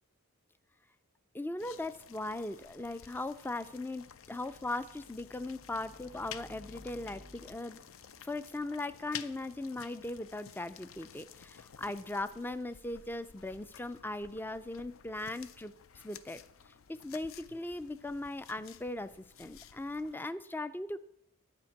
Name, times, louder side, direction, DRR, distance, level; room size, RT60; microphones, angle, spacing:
voice 1, 1.3-7.8 8.2-15.7 16.0-16.4 16.9-21.0, left 2 dB, 10° left, 14 dB, 0.3 m, -39 dB
sound 1, 1.6-20.2, left 8 dB, 65° left, 0.5 m, -52 dB
sound 2, 3.7-8.4, left 1 dB, 45° left, 3.7 m, -57 dB
10.5 x 5.1 x 8.3 m, 0.76 s
head